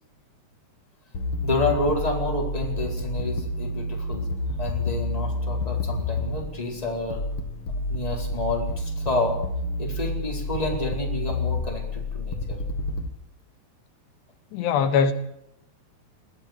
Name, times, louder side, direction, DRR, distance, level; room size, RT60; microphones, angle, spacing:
sound 1, 1.1-13.1, left 2 dB, 45° left, 2.1 m, -29 dB
voice 1, 1.4-4.3 4.6-7.3 7.7-9.4 9.8-12.6, left 2 dB, 10° left, 4.2 m, -29 dB
voice 2, 14.5-15.1, left 6 dB, 85° left, 3.6 m, -21 dB
21.0 x 16.0 x 8.2 m
omnidirectional pair, 4.8 m